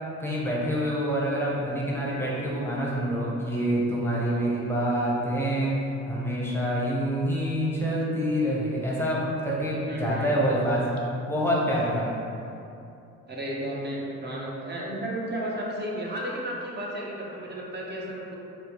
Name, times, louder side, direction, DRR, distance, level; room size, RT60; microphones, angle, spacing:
voice 1, 0.2-5.8 6.1-11.0 11.3-12.2, equal, 10° left, -6 dB, 0.7 m, -26 dB
voice 2, 9.9-10.3 13.3-18.4, right 1 dB, 35° right, -3 dB, 0.7 m, -33 dB
4.4 x 2.0 x 2.8 m, 2.7 s
cardioid pair, 90°, 30 cm